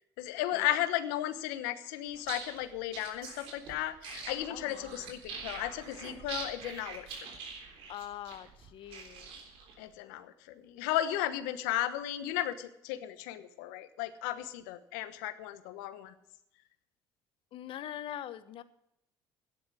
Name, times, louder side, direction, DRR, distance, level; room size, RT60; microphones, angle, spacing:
voice 1, 0.2-7.1 9.8-16.1, left 13 dB, 85° left, 12 dB, 1.1 m, -35 dB
sound 1, 2.1-9.7, right 5 dB, 75° right, 3.6 m, -44 dB
voice 2, 4.5-5.0 7.9-9.3 17.5-18.6, left 11 dB, 65° left, 13 dB, 1.1 m, -43 dB
12.5 x 10.0 x 6.2 m, 0.78 s
supercardioid pair, 70°, 10 cm